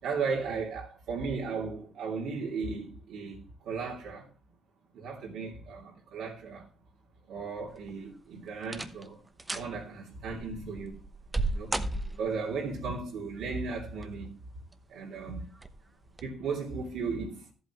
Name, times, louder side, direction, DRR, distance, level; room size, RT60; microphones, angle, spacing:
voice 1, 0.0-4.3 4.9-6.7 7.3-9.2 9.5-11.0 11.5-11.7 12.2-14.4 14.9-15.5 16.2-17.5, right 4 dB, 80° right, 2.7 m, -35 dB
sound 1, 7.7-8.1 8.6-9.1 9.4-9.7 10.3-12.5 13.7-14.3 14.7-14.8 15.6-15.8 16.1-16.2, right 2 dB, 15° right, 0.9 m, -34 dB
14.0 x 8.2 x 3.0 m
cardioid pair, 90°, 0 cm